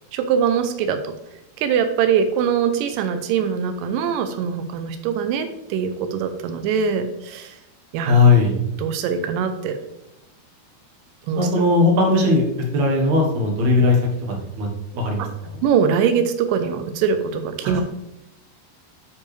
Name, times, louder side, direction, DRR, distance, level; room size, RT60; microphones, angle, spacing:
voice 1, 0.1-1.1 1.6-7.6 7.9-8.2 8.8-9.8 11.3-11.4 15.2-15.3 15.6-17.8, right 7 dB, 90° right, 7 dB, 1.9 m, -22 dB
voice 2, 8.0-8.5 11.3-12.4 12.7-14.7 14.9-15.3 15.5-15.6 17.6-17.8, left 3 dB, 60° right, 0 dB, 2.2 m, -18 dB
10.0 x 4.6 x 3.2 m, 0.86 s
omnidirectional pair, 4.6 m